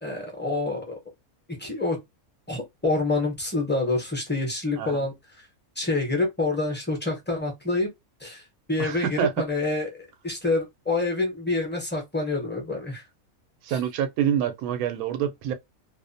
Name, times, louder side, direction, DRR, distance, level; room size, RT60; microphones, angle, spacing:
voice 1, 0.0-0.9 1.6-2.0 2.5-5.1 5.8-7.9 8.2-8.4 8.7-13.0, left 2 dB, 10° left, 0.5 m, -27 dB
voice 2, 8.8-9.4 13.6-15.5, right 9 dB, 85° right, 1.0 m, -27 dB
2.5 x 2.1 x 2.5 m
omnidirectional pair, 1.5 m